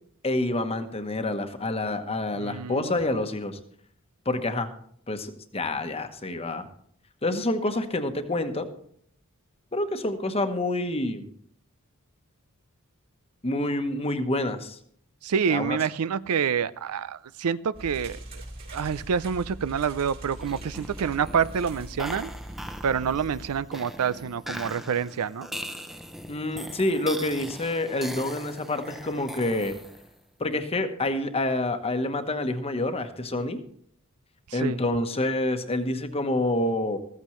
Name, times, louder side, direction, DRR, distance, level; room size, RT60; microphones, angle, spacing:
voice 1, 0.2-3.6 4.2-4.7 5.1-6.7 7.2-8.7 9.7-11.3 13.4-14.8 15.5-15.8 26.3-29.7 30.4-33.6 34.5-37.0, left 2 dB, 25° left, 8 dB, 1.1 m, -27 dB
voice 2, 2.3-2.9 15.2-18.4 18.7-22.3 22.8-25.5 34.5-34.8, right 7 dB, 90° right, 16 dB, 0.5 m, -27 dB
sound 1, 17.7-23.6, right 1 dB, 45° right, 3.0 m, -41 dB
sound 2, 20.3-30.2, equal, ahead, 0.6 m, -41 dB
14.5 x 14.5 x 3.1 m, 0.62 s
head